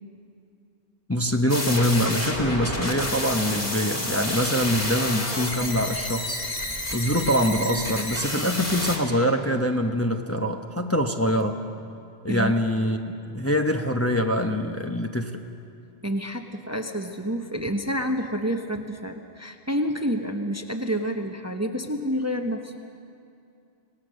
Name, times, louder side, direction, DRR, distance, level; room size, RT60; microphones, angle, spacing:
voice 1, 1.1-6.4 6.9-11.6 12.2-15.4, equal, 15° left, 3 dB, 0.9 m, -24 dB
sound 1, 1.5-9.0, left 1 dB, 40° left, 2.9 m, -29 dB
voice 2, 12.3-12.6 16.0-22.7, equal, 15° right, 4 dB, 0.9 m, -28 dB
26.0 x 18.5 x 6.4 m, 2.5 s
omnidirectional pair, 1.0 m